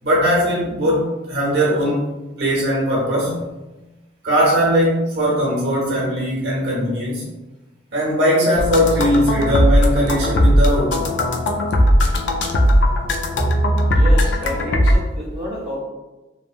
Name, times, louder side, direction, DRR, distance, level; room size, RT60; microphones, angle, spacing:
voice 1, 0.0-2.0 2.4-3.4 4.2-7.2 7.9-11.1, equal, 65° right, -4 dB, 1.0 m, -19 dB
sound 1, 8.6-15.0, equal, 75° left, 0.4 m, -17 dB
voice 2, 13.9-15.8, left 1 dB, 40° right, -10 dB, 0.7 m, -29 dB
3.1 x 2.2 x 2.4 m, 1.1 s
head